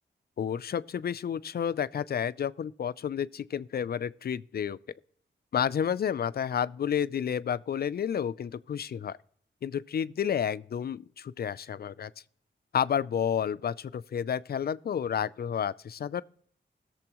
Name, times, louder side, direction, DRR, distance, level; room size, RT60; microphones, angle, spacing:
voice 1, 0.4-4.8 5.5-9.2 9.6-12.1 12.7-16.2, left 8 dB, 55° left, 0.4 m, -30 dB
20.5 x 7.0 x 3.0 m
wide cardioid pair, 120°, 19 cm